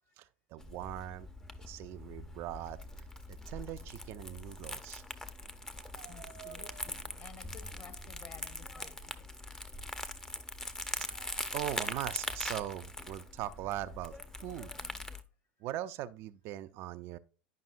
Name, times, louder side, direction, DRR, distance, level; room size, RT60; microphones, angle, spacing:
voice 1, 0.2-1.3 1.6-2.8 3.5-5.0 5.8-6.9 10.2-10.3 11.0-14.7 15.6-17.2, right 13 dB, 50° right, 0.4 m, -41 dB
Crumpling crinkling, 0.6-15.2, left 1 dB, 10° left, 0.6 m, -42 dB
voice 2, 6.0-9.3, left 6 dB, 35° left, 1.2 m, -55 dB
10.5 x 5.4 x 2.5 m
figure-of-eight pair, 80°, 6 cm